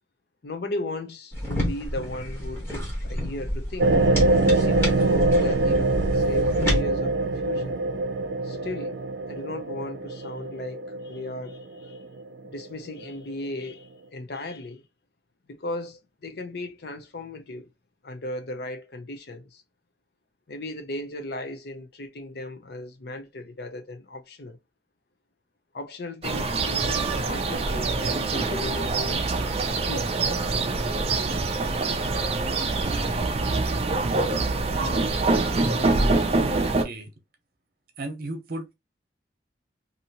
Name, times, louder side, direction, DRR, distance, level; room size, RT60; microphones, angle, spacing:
voice 1, 0.4-3.9 4.6-7.8 8.4-9.0 9.3-12.0 12.4-14.8 15.5-17.7 18.0-19.6 20.5-24.6 25.7-29.3 29.9-30.2, left 1 dB, 60° left, 0.6 m, -36 dB
sound 1, 1.3-6.8, equal, 15° left, 1.1 m, -29 dB
sound 2, 3.8-12.5 13.1-13.2, right 2 dB, 90° right, 0.5 m, -24 dB
sound 3, 26.2-36.8, right 3 dB, 35° right, 0.4 m, -25 dB
voice 2, 36.4-37.1 38.0-38.7, right 2 dB, 55° right, 0.9 m, -34 dB
2.8 x 2.7 x 2.7 m
head